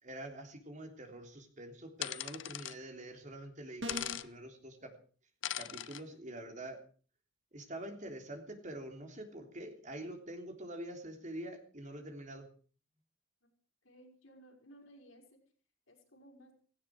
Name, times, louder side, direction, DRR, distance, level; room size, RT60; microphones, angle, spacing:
voice 1, 0.0-4.9 5.5-6.8 7.5-12.5, right 1 dB, 40° right, 4 dB, 3.4 m, -46 dB
sound 1, 2.0-2.8 3.9-4.3 5.4-6.0, left 12 dB, 70° left, 0.7 m, -39 dB
sound 2, 3.8-4.3, equal, 65° right, 2.0 m, -41 dB
voice 2, 13.8-15.4 15.9-16.5, right 1 dB, 85° left, 3 dB, 5.2 m, -58 dB
17.0 x 16.5 x 4.8 m, 0.41 s
head